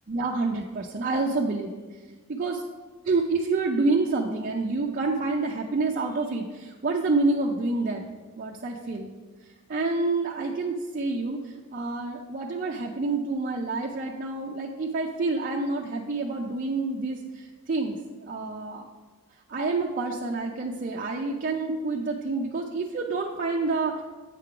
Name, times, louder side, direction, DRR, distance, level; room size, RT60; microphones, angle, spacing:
voice 1, 0.1-2.0 2.3-2.6 3.1-8.0 8.4-9.1 9.4-18.9 19.5-24.0, right 3 dB, 40° right, 0 dB, 0.5 m, -28 dB
8.2 x 3.7 x 5.7 m, 1.3 s
head